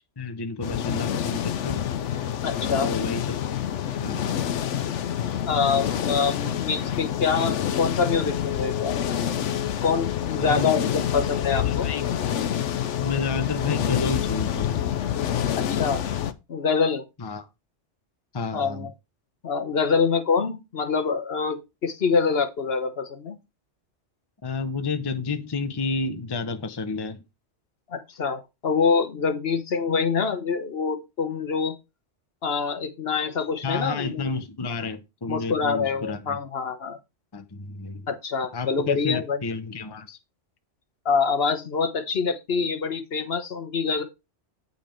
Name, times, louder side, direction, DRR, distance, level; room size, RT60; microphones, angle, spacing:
voice 1, 0.2-1.9 2.8-3.4 4.0-4.5 10.3-10.7 11.6-12.0 13.0-14.9 17.2-17.5 18.3-18.9 24.4-27.2 33.6-36.4 37.3-38.1 38.5-40.2, left 4 dB, 25° left, 0.7 m, -31 dB
sound 1, 0.6-16.3, left 10 dB, 80° left, 1.0 m, -27 dB
voice 2, 2.4-2.9 5.5-9.0 9.8-11.9 15.5-16.0 16.5-17.0 18.5-18.9 19.4-23.3 27.9-31.7 32.4-34.3 35.3-37.0 38.1-39.4 41.0-44.0, left 5 dB, 55° left, 1.2 m, -25 dB
8.7 x 5.7 x 4.4 m
omnidirectional pair, 1.2 m